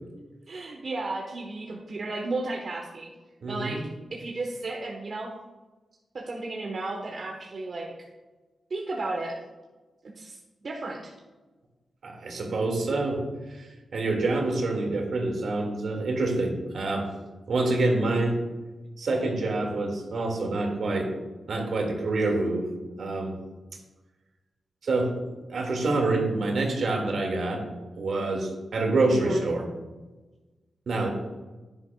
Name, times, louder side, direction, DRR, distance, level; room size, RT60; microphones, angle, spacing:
voice 1, 0.5-3.1 3.5-3.8 4.1-5.3 6.1-7.9 8.7-9.4 10.1-11.1 29.1-29.4, right 2 dB, 50° right, 0 dB, 1.1 m, -33 dB
voice 2, 3.4-3.8 12.0-13.2 13.5-17.1 17.5-18.4 19.0-21.1 21.5-22.7 23.0-23.4 24.8-25.2 25.5-27.6 27.9-29.7 30.9-31.1, right 2 dB, 70° right, 2 dB, 2.0 m, -26 dB
10.5 x 9.7 x 2.3 m, 1.2 s
cardioid pair, 80°, 0 cm